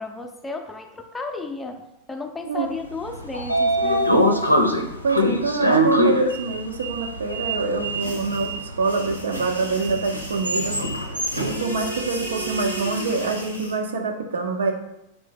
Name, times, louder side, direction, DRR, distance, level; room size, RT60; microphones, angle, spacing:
voice 1, 0.0-4.2, left 3 dB, 10° left, 4 dB, 0.5 m, -34 dB
Sliding door, 2.9-13.1, equal, 90° left, 0.5 m, -24 dB
voice 2, 5.0-10.8 11.4-14.7, right 4 dB, 65° right, 4 dB, 0.6 m, -25 dB
sound 1, 8.0-13.8, right 2 dB, 85° right, 1.0 m, -35 dB
3.9 x 3.3 x 3.7 m, 0.84 s
figure-of-eight pair, 90°, 0 cm